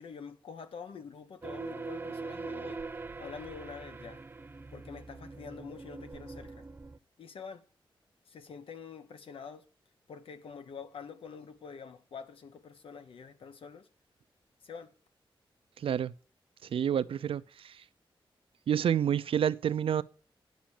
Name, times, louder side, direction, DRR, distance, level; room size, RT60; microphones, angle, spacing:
voice 1, 0.0-2.8 3.2-4.2 4.7-6.6 7.2-7.6 8.3-9.6 10.1-13.9 14.6-14.9, left 6 dB, 80° left, 1.2 m, -46 dB
sound 1, 1.4-7.0, right 3 dB, 20° right, 0.5 m, -42 dB
voice 2, 15.8-16.1 16.6-17.8 18.7-20.0, right 9 dB, 85° right, 0.5 m, -29 dB
10.5 x 6.1 x 7.2 m
wide cardioid pair, 165°, 9 cm